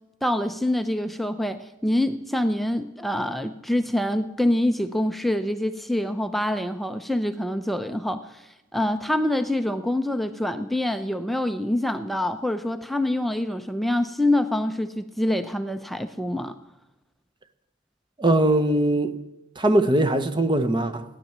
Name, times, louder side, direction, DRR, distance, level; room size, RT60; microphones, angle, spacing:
voice 1, 0.2-8.4 8.7-16.5, left 1 dB, ahead, 0.6 m, -25 dB
voice 2, 18.2-19.2 19.6-21.0, right 1 dB, 25° right, 1.0 m, -21 dB
17.0 x 10.5 x 7.3 m
head